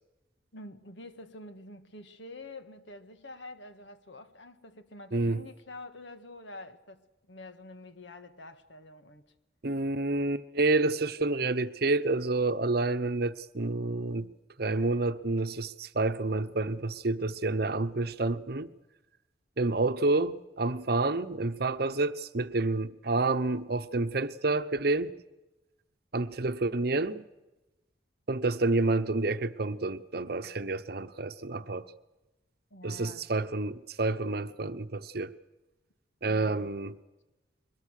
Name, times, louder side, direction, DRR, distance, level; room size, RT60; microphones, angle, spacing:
voice 1, 0.5-9.3 32.7-33.3 36.2-36.7, left 2 dB, 70° left, 1.7 m, -47 dB
voice 2, 5.1-5.4 9.6-14.3 14.6-18.7 19.6-25.1 26.1-27.3 28.3-31.9 32.8-35.3 36.2-36.9, right 2 dB, 55° right, 0.9 m, -29 dB
23.0 x 21.0 x 6.6 m
head